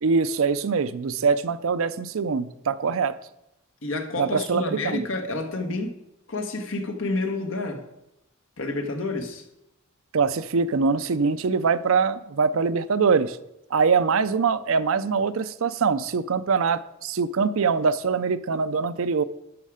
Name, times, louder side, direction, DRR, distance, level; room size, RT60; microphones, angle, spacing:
voice 1, 0.0-3.2 4.2-5.0 10.1-13.4 13.7-19.2, right 5 dB, 65° right, 14 dB, 0.5 m, -23 dB
voice 2, 3.8-6.0 6.3-7.8 8.6-9.4, left 2 dB, 60° left, 4 dB, 1.5 m, -29 dB
12.0 x 6.6 x 4.9 m, 0.84 s
head